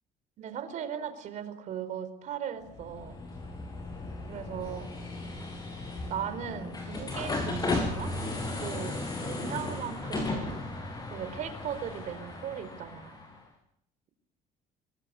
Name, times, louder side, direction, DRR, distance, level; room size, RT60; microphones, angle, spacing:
voice 1, 0.4-3.2 4.3-4.9 6.1-8.1 8.6-10.7 11.1-13.2, right 8 dB, 55° right, 11 dB, 4.4 m, -38 dB
sound 1, 2.7-13.4, left 2 dB, 25° left, 6.2 m, -36 dB
26.5 x 22.5 x 10.0 m, 0.81 s
cardioid pair, 155°, 15 cm